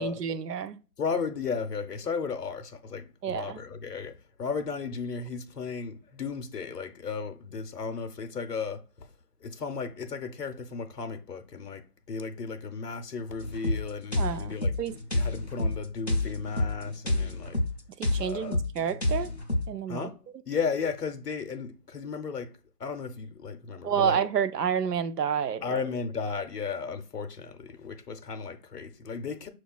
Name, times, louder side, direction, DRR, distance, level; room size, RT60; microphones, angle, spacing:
voice 1, 0.0-0.8 3.2-3.6 14.2-15.0 18.0-19.3 19.7-20.1 23.8-25.8, right 8 dB, 80° right, 0.5 m, -29 dB
voice 2, 1.0-9.1 9.4-14.8 15.1-17.6 18.2-18.6 19.9-24.2 25.6-29.5, left 5 dB, 80° left, 0.7 m, -35 dB
sound 1, 13.4-19.7, left 2 dB, 45° left, 0.5 m, -29 dB
6.3 x 2.3 x 2.2 m
figure-of-eight pair, 175°, 47 cm